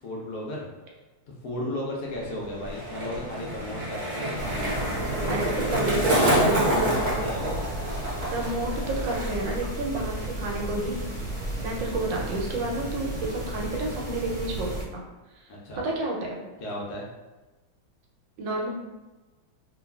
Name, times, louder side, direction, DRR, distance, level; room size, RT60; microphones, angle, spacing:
voice 1, 0.0-0.7 1.4-5.8 6.2-7.6 15.5-15.9 16.6-17.1, left 1 dB, 70° left, -3 dB, 0.9 m, -34 dB
Skateboard, 2.1-9.7 9.9-10.4, right 1 dB, 50° right, 0.9 m, -28 dB
sound 1, 4.4-14.8, right 1 dB, 35° left, 0.7 m, -34 dB
voice 2, 5.3-7.3 8.3-11.0 11.6-15.0 15.8-16.4 18.4-18.7, right 2 dB, 75° right, -1 dB, 1.2 m, -30 dB
3.1 x 2.3 x 2.2 m, 1.2 s
omnidirectional pair, 2.1 m